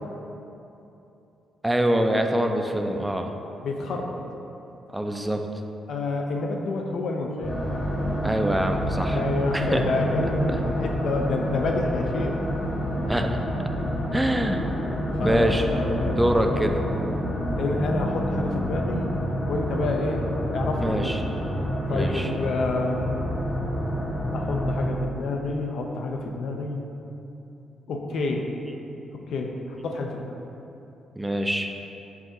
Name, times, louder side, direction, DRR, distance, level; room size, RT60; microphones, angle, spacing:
voice 1, 1.6-3.3 4.9-5.4 8.2-9.2 9.5-9.8 13.1-13.3 14.1-14.6 15.2-15.6 16.1-16.8 20.8-21.2 21.9-22.3 31.2-31.7, right 1 dB, 15° right, 4 dB, 0.3 m, -24 dB
voice 2, 3.6-4.2 5.9-7.6 9.1-12.4 15.1-16.2 17.6-19.1 19.5-20.2 20.5-21.2 21.9-23.3 24.3-26.8 27.9-28.5 29.3-30.4, left 3 dB, 70° left, 2 dB, 0.3 m, -28 dB
sound 1, 7.4-24.9, equal, 50° left, 1.2 m, -28 dB
4.6 x 2.5 x 2.6 m, 2.9 s
hypercardioid pair, 45°, 0 cm